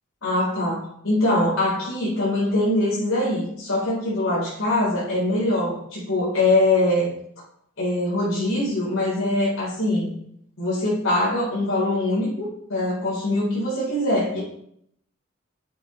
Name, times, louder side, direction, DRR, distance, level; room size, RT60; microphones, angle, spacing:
voice 1, 0.2-7.1 7.8-10.1 10.6-14.4, left 1 dB, 75° left, -8 dB, 4.3 m, -23 dB
9.6 x 8.3 x 3.3 m, 0.70 s
head